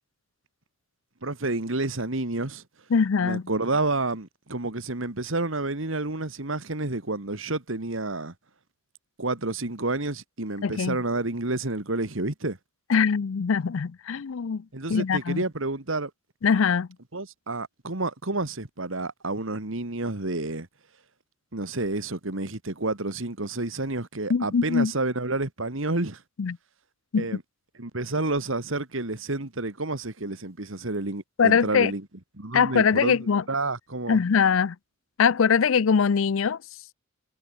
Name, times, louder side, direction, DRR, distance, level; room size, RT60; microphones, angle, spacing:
voice 1, 1.2-2.6 3.2-8.3 9.2-12.6 14.7-16.1 17.1-20.7 21.5-26.2 27.2-27.4 27.8-32.0 32.4-33.2 33.5-34.2, right 2 dB, 75° right, 2.1 m, -29 dB
voice 2, 2.9-3.4 10.6-11.0 12.9-14.6 14.9-15.4 16.4-16.9 24.3-24.9 26.4-26.6 27.1-27.3 31.4-31.9 32.5-33.4 34.1-34.8 35.2-36.6, left 6 dB, 80° left, 0.5 m, -22 dB
head